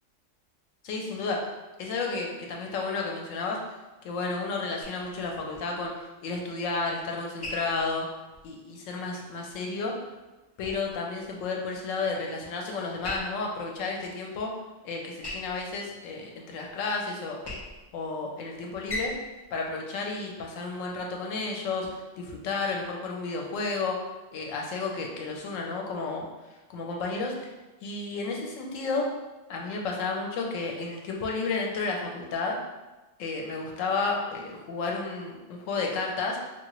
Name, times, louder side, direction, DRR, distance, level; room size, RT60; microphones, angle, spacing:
voice 1, 0.8-1.5 1.8-3.6 4.0-5.9 6.2-8.1 8.4-9.9 10.6-14.5 14.8-17.4 17.9-19.1 19.5-24.0 24.3-26.3 26.7-27.5 27.8-29.1 29.5-32.6 33.2-36.4, left 3 dB, 90° left, 0 dB, 1.0 m, -32 dB
sound 1, 4.8-20.9, left 1 dB, 35° left, 0.3 m, -44 dB
2.9 x 2.4 x 2.9 m, 1.1 s
omnidirectional pair, 1.3 m